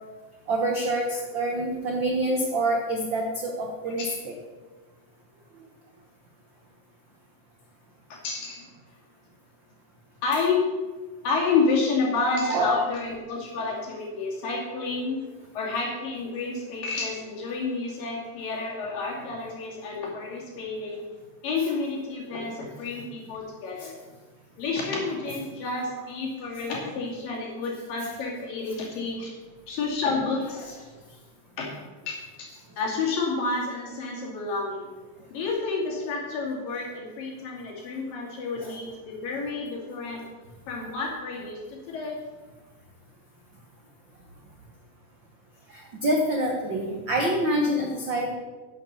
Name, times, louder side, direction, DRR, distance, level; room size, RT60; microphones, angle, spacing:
voice 1, 0.5-4.3 12.5-12.8 23.8-23.9 38.6-38.7 45.7-48.3, right 1 dB, 75° right, 1 dB, 1.0 m, -26 dB
voice 2, 8.1-8.7 10.2-10.7 11.2-15.2 15.5-21.0 21.4-24.0 24.6-29.3 29.7-30.8 31.6-31.7 32.1-34.9 35.3-40.3 40.7-42.2, left 4 dB, 80° left, -3 dB, 4.3 m, -30 dB
10.5 x 8.0 x 6.9 m, 1.3 s
omnidirectional pair, 3.9 m